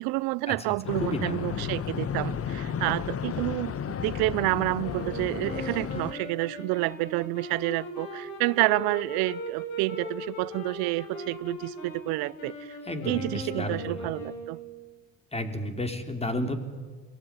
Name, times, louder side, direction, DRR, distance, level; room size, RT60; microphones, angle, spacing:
voice 1, 0.0-12.8 13.1-14.6, right 21 dB, 85° right, 0.6 m, -29 dB
sound 1, 0.9-6.1, left 8 dB, 40° left, 1.2 m, -33 dB
voice 2, 1.0-1.5 12.8-14.1 15.3-16.6, left 1 dB, 15° left, 3.5 m, -32 dB
sound 2, 4.8-14.8, equal, 90° left, 6.2 m, -39 dB
23.0 x 18.5 x 9.8 m
supercardioid pair, 85°, 36 cm